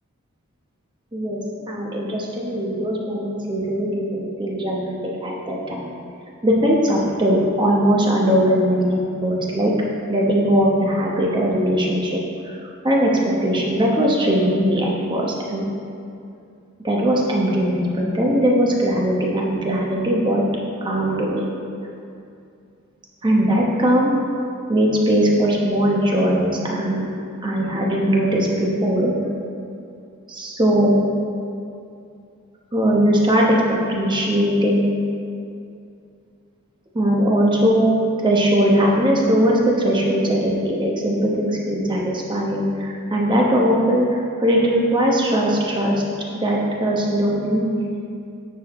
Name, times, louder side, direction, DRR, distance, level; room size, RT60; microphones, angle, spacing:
voice 1, 1.7-5.0 5.2-5.9 6.4-9.7 10.1-12.2 12.4-12.6 12.8-15.6 16.8-20.4 20.8-21.5 23.2-24.1 24.7-27.1 27.4-29.1 30.3-31.0 32.7-34.9 36.9-37.9 38.2-46.0 46.3-47.7, equal, 20° right, -2 dB, 1.0 m, -20 dB
9.1 x 6.2 x 3.1 m, 2.5 s
head